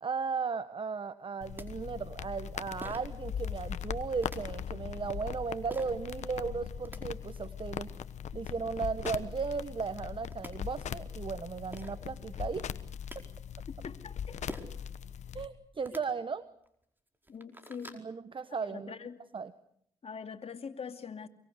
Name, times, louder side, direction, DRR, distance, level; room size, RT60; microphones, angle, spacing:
voice 1, 0.0-7.9 8.3-12.7 15.3-16.4 17.9-18.9 19.3-19.5, right 5 dB, 45° right, 13 dB, 1.2 m, -36 dB
sound 1, 1.2-1.3 1.6-1.7 2.8-3.2 4.2-4.4 5.7-6.0 6.6-7.0 9.0-9.2 10.0-10.1 10.3-10.5 11.4-11.5 11.7-11.9 12.8-13.2 14.5-14.8 15.7-16.0 16.7-16.8 17.1-18.0, right 1 dB, 15° right, 4.6 m, -45 dB
sound 2, 1.4-15.5, left 8 dB, 70° left, 1.2 m, -40 dB
voice 2, 13.8-14.4 15.9-16.0 17.3-18.0 18.7-19.2 20.0-21.3, left 6 dB, 55° left, 8 dB, 2.4 m, -43 dB
26.0 x 23.5 x 8.1 m, 0.73 s
supercardioid pair, 45°, 12 cm